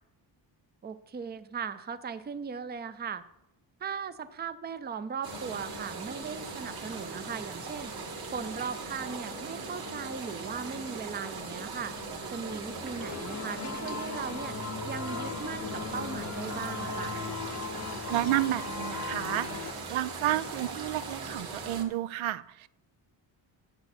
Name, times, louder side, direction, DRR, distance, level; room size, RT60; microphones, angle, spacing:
voice 1, 0.8-3.2 3.8-7.9 8.3-11.9 12.3-14.6 14.8-17.2, right 6 dB, 25° right, 13 dB, 0.4 m, -38 dB
sound 1, 5.2-21.8, right 3 dB, 50° right, 1.8 m, -39 dB
sound 2, 13.0-19.7, left 5 dB, 35° left, 0.6 m, -38 dB
voice 2, 18.1-19.5 19.9-22.7, right 14 dB, 85° right, 17 dB, 0.6 m, -30 dB
8.1 x 8.0 x 5.9 m, 0.82 s
wide cardioid pair, 145°, 46 cm